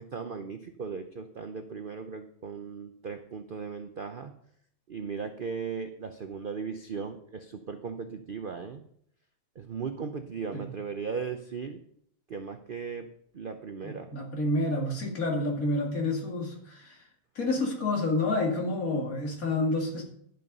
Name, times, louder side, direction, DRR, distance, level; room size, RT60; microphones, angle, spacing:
voice 1, 0.0-4.3 4.9-8.8 9.6-11.8 12.3-13.1 13.3-14.1, right 5 dB, 80° right, 7 dB, 0.4 m, -37 dB
voice 2, 13.8-17.0 17.4-20.0, left 2 dB, 50° left, 1 dB, 2.7 m, -29 dB
11.0 x 7.8 x 5.4 m, 0.69 s
omnidirectional pair, 1.9 m